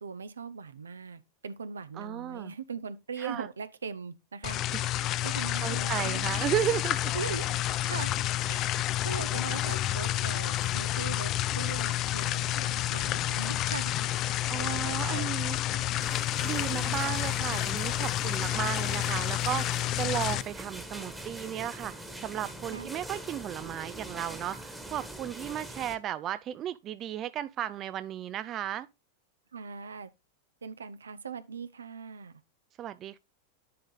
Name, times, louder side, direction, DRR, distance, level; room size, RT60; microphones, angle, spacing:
voice 1, 0.0-6.3 7.1-8.1 8.5-13.9 14.6-16.1 22.7-22.9 29.5-30.1 30.6-32.3, right 6 dB, 70° right, 0.7 m, -41 dB
voice 2, 2.0-2.5 3.2-3.5 5.3-7.1 14.5-15.6 16.4-28.9 32.8-33.2, right 11 dB, 30° right, 0.3 m, -34 dB
sound 1, 4.4-20.4, left 14 dB, 35° left, 0.4 m, -30 dB
sound 2, 16.0-26.0, right 1 dB, 5° right, 1.4 m, -43 dB
10.0 x 3.8 x 3.9 m
figure-of-eight pair, 90°, 0 cm